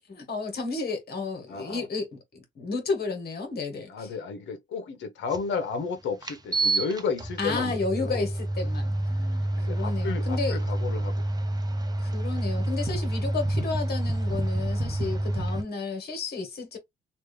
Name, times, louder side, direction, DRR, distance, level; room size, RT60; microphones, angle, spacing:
voice 1, 0.0-4.1 7.4-10.6 12.0-16.8, left 4 dB, 50° left, 1.5 m, -32 dB
voice 2, 1.5-1.8 3.9-8.2 9.5-11.2, left 5 dB, 70° left, 0.9 m, -33 dB
sound 1, 5.3-5.4 6.2-15.6, right 1 dB, 20° right, 0.8 m, -28 dB
3.2 x 2.5 x 3.2 m
cardioid pair, 90°, 20 cm